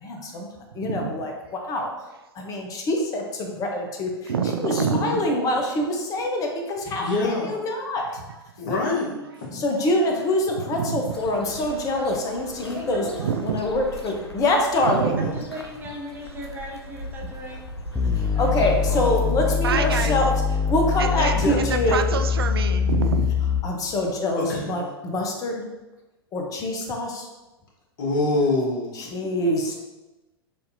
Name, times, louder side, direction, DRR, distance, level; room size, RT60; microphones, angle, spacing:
voice 1, 0.0-0.5 0.7-1.3 1.7-1.9 2.4-4.1 4.6-8.0 9.5-13.0 13.4-15.1 18.2-20.4 20.7-22.0 23.6-25.6 26.3-27.3 28.9-29.7, left 1 dB, 25° left, 2 dB, 0.8 m, -25 dB
voice 2, 0.8-1.2 4.2-5.1 8.1-8.4 10.5-11.1 13.2-13.6 14.8-15.4 18.2-18.7 19.6-20.2 21.0-23.5, right 6 dB, 70° right, 7 dB, 0.4 m, -28 dB
voice 3, 4.7-5.2 7.0-7.6 8.6-9.5 15.2-15.3 18.9-19.3 20.0-20.2 21.3-21.6 24.4-24.9 28.0-28.9, left 2 dB, 55° left, -3 dB, 1.4 m, -26 dB
sound 1, 11.1-19.0, left 1 dB, 90° left, 0.5 m, -40 dB
voice 4, 12.7-13.3 15.2-17.6, equal, 15° right, -2 dB, 1.0 m, -37 dB
sound 2, 18.0-23.9, left 6 dB, 10° left, 0.3 m, -24 dB
6.4 x 2.7 x 2.7 m, 1.1 s
figure-of-eight pair, 95°, 13 cm